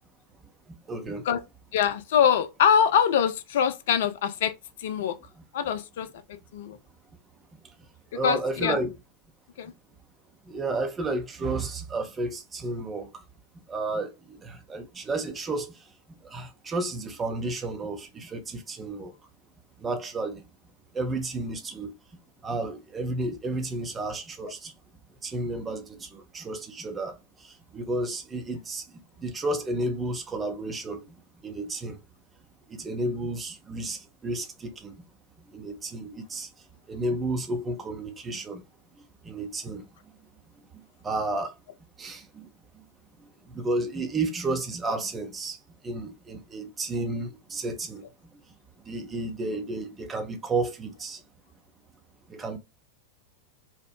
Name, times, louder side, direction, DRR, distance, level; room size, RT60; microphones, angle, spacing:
voice 1, 0.4-1.3 8.1-8.9 10.4-13.2 13.7-19.2 19.8-20.5 20.9-22.0 22.4-24.7 25.2-32.0 32.7-35.0 35.4-36.5 36.9-38.6 39.2-40.2 40.7-41.5 42.0-42.8 43.2-48.1 48.8-51.2 52.3-52.6, right 2 dB, 20° right, 0.5 m, -32 dB
voice 2, 1.7-4.5 4.8-5.2 5.5-6.2 6.5-6.8 8.2-8.8 9.6-9.7, left 8 dB, 55° left, 0.3 m, -23 dB
2.7 x 2.0 x 2.2 m
figure-of-eight pair, 90°, 0 cm